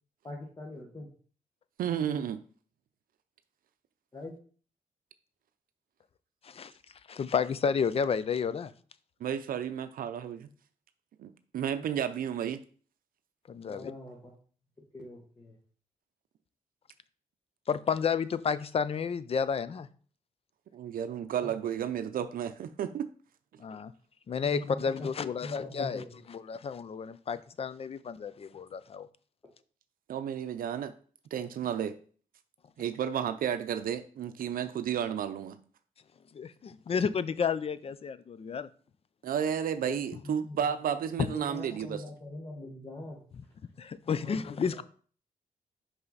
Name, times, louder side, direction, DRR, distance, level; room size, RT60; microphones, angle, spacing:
voice 1, 0.2-1.1 4.1-4.4 13.7-14.3 14.9-15.6 21.3-21.5 24.4-25.1 25.4-26.1 39.8-40.7 41.2-43.2 44.1-44.8, left 1 dB, 25° left, 1.3 m, -43 dB
voice 2, 1.8-2.4 9.2-10.5 11.2-12.6 20.7-23.1 30.1-30.9 31.3-32.0 32.8-35.6 39.2-42.0, right 9 dB, 75° right, 0.5 m, -32 dB
voice 3, 7.1-8.7 13.5-13.9 17.7-19.9 23.6-23.9 24.3-29.1 36.3-38.7 41.2-41.3 43.8-44.8, left 6 dB, 40° left, 0.5 m, -31 dB
5.6 x 5.6 x 4.0 m
cardioid pair, 100°, 15 cm